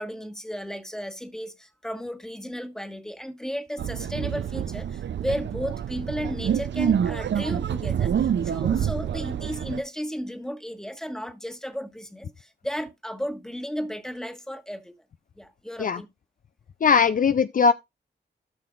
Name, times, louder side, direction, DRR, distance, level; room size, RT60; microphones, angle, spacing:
voice 1, 0.0-14.9 15.4-16.1, equal, 5° left, 1.4 m, -34 dB
sound 1, 3.8-9.8, right 8 dB, 70° right, 0.6 m, -27 dB
voice 2, 16.8-17.7, left 5 dB, 45° left, 0.4 m, -19 dB
16.5 x 5.8 x 2.5 m
cardioid pair, 45°, 20 cm